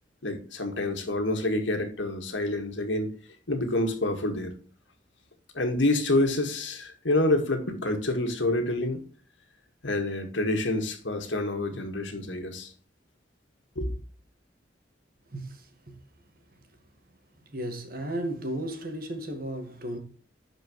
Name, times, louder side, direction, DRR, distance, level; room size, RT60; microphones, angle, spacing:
voice 1, 0.2-3.1 3.5-4.5 5.5-9.0 9.8-12.7 13.8-13.9, left 2 dB, 90° left, 1.9 m, -27 dB
voice 2, 15.3-16.0 17.5-20.0, right 1 dB, 50° right, 1.8 m, -34 dB
11.5 x 5.1 x 3.1 m
head